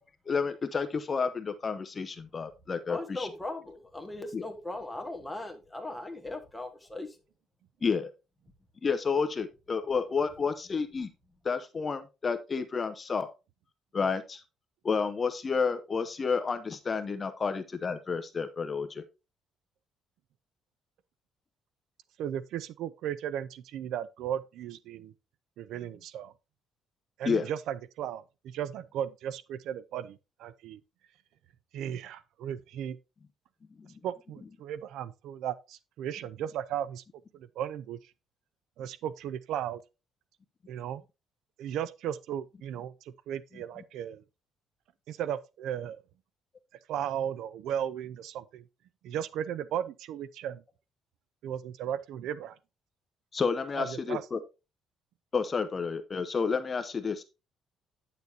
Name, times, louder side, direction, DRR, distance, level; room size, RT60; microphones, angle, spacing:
voice 1, 0.3-3.3 4.3-4.5 7.8-8.1 8.8-11.1 11.4-13.3 13.9-14.4 14.8-19.0 27.2-27.4 33.8-33.9 53.3-54.4 55.3-57.2, left 5 dB, 30° left, 0.7 m, -30 dB
voice 2, 2.9-7.2, left 2 dB, 5° left, 1.6 m, -38 dB
voice 3, 22.2-25.1 25.6-26.3 27.2-30.8 31.7-33.0 34.0-37.0 37.3-38.1 38.8-39.8 40.7-41.0 41.6-44.2 45.1-46.0 46.9-48.6 49.0-50.6 51.4-52.6 53.7-54.2, right 10 dB, 75° right, 0.5 m, -36 dB
9.7 x 6.8 x 2.7 m
cardioid pair, 135°, 0 cm